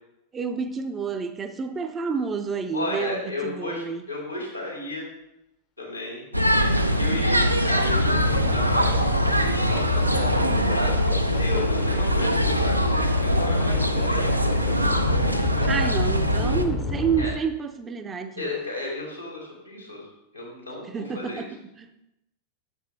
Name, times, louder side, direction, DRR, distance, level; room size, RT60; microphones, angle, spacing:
voice 1, 0.3-4.0 15.7-18.5 20.8-21.5 21.8-21.9, right 6 dB, 20° right, 8 dB, 0.5 m, -29 dB
voice 2, 2.7-5.1 5.8-6.2 7.0-10.9 11.2-14.9 17.2-17.3 18.4-20.1 20.3-21.4, left 2 dB, 90° left, -2 dB, 2.0 m, -34 dB
sound 1, 6.3-16.7, equal, 90° right, 0.4 m, -22 dB
sound 2, 7.8-17.3, left 3 dB, 35° left, 0.6 m, -31 dB
6.4 x 6.1 x 3.3 m, 0.88 s
figure-of-eight pair, 90°, 0 cm